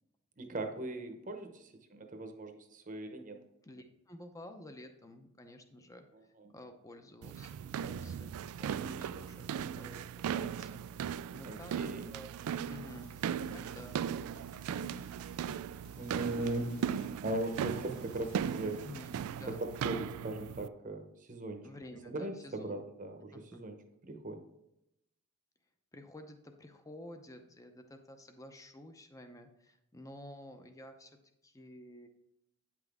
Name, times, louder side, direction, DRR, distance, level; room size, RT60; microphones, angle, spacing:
voice 1, 0.4-3.5 6.1-6.5 11.4-12.1 16.0-18.8 19.5-21.7 22.1-23.8 24.0-24.4, right 1 dB, 35° right, 5 dB, 0.9 m, -39 dB
voice 2, 3.6-10.1 10.3-10.8 11.1-11.7 12.1-12.3 12.7-13.1 13.5-14.0 18.8-20.1 21.6-22.8 23.3-23.6 25.9-31.2 31.4-32.1, left 1 dB, 15° left, 7 dB, 0.7 m, -51 dB
sound 1, 7.2-20.7, right 8 dB, 80° right, 0.3 m, -38 dB
sound 2, 12.9-18.9, left 3 dB, 80° left, 0.9 m, -61 dB
8.9 x 6.0 x 3.5 m, 0.83 s
head